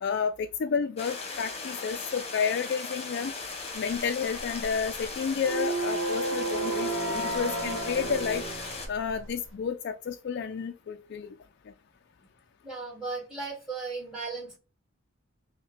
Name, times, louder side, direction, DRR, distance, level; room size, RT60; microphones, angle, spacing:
voice 1, 0.0-3.3 3.7-8.4 8.9-11.3, left 6 dB, 55° left, 6 dB, 0.3 m, -31 dB
sound 1, 1.0-8.9, left 3 dB, 30° left, 1.0 m, -38 dB
sound 2, 3.9-9.5, right 2 dB, 75° right, 1.0 m, -33 dB
voice 2, 12.6-14.6, right 4 dB, 5° right, -9 dB, 2.4 m, -36 dB
5.3 x 2.2 x 3.3 m, 0.31 s
head